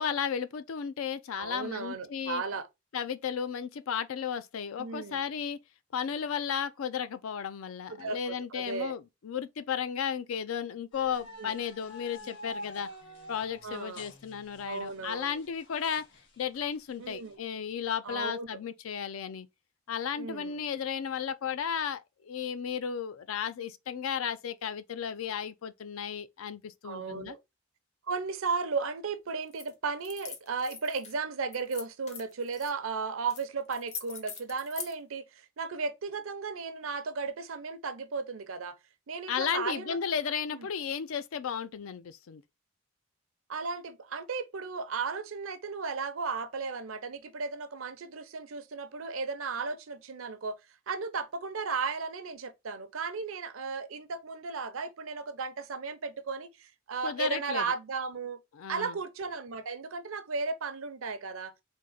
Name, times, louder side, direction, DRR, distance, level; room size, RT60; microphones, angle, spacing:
voice 1, 0.0-2.4 2.9-5.6 5.9-12.9 13.3-16.1 16.4-19.5 19.9-27.4 39.3-42.4 57.0-57.7 58.5-59.0, left 7 dB, 80° left, 0.4 m, -34 dB
voice 2, 1.4-2.7 4.8-5.2 7.9-8.9 11.4-11.6 13.6-14.0 14.6-15.4 17.0-17.4 18.0-18.5 20.1-20.6 26.8-27.4 28.1-38.8 39.1-40.0 40.5-40.7 43.5-50.6 50.9-58.4 58.7-61.5, right 4 dB, 75° right, 0.6 m, -35 dB
sound 1, 10.9-17.4, equal, 55° left, 1.1 m, -48 dB
sound 2, 29.5-29.7 30.0-31.1 31.5-32.7 33.3-33.4 33.7-34.9, left 6 dB, 35° left, 0.6 m, -42 dB
3.6 x 2.7 x 3.8 m
head